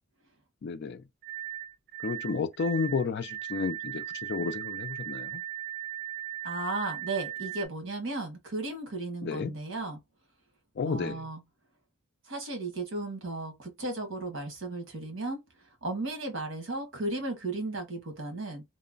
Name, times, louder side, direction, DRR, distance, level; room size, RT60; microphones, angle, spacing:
voice 1, 0.6-1.0 2.0-4.0 4.3-5.3 9.2-9.5 10.8-11.2, left 4 dB, 55° left, 0.4 m, -31 dB
sound 1, 1.2-7.7, right 13 dB, 45° right, 0.6 m, -38 dB
voice 2, 6.4-10.0 10.8-11.4 12.3-15.4 15.8-18.6, right 2 dB, 65° right, 1.2 m, -35 dB
3.0 x 2.1 x 2.4 m
head